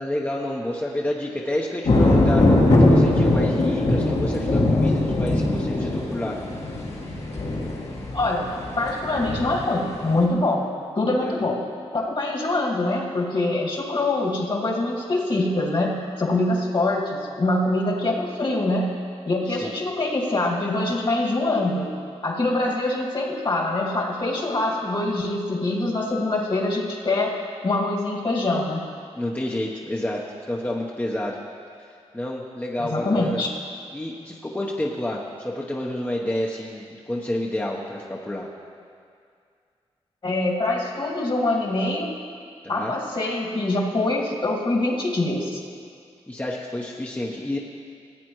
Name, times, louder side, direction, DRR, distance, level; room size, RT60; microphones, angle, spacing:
voice 1, 0.0-2.4 2.8-6.4 11.2-11.4 19.5-19.7 29.2-30.2 30.5-31.4 31.8-31.9 32.1-33.4 33.9-38.5 42.6-42.9 46.3-47.6, left 1 dB, 15° left, -3 dB, 0.9 m, -29 dB
sound 1, 1.8-10.2, left 2 dB, 70° left, 1.8 m, -21 dB
voice 2, 8.1-8.5 8.8-10.7 10.9-11.6 11.9-18.9 19.3-21.9 22.2-27.4 27.6-28.8 32.8-33.5 40.2-42.1 42.7-45.6, left 2 dB, 50° left, -2 dB, 2.1 m, -24 dB
16.5 x 8.4 x 3.1 m, 2.3 s
cardioid pair, 55°, 11 cm